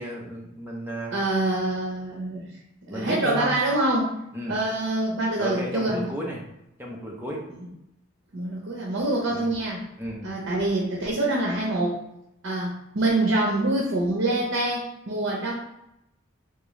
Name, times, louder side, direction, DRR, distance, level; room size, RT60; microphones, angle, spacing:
voice 1, 0.0-1.2 2.9-3.6 4.3-4.6 5.4-6.4 6.8-7.4 9.3-9.5 10.0-10.3, equal, 10° right, -3 dB, 0.7 m, -32 dB
voice 2, 1.1-2.5 2.9-4.1 4.5-6.1 8.3-9.8 10.2-12.0 12.4-15.5, right 2 dB, 80° right, -2 dB, 0.7 m, -25 dB
3.7 x 2.4 x 3.1 m, 0.84 s
head